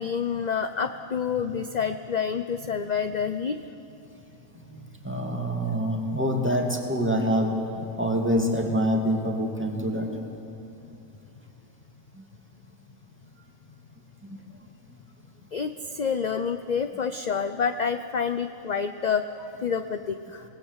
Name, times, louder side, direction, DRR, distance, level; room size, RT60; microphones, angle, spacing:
voice 1, 0.0-3.6 15.5-20.4, left 6 dB, 40° left, 9 dB, 0.6 m, -28 dB
voice 2, 4.7-7.6 8.0-10.2 10.6-10.8 12.2-12.3 14.3-14.4, equal, 10° right, 2 dB, 2.5 m, -26 dB
27.5 x 19.0 x 8.1 m, 3.0 s
omnidirectional pair, 1.4 m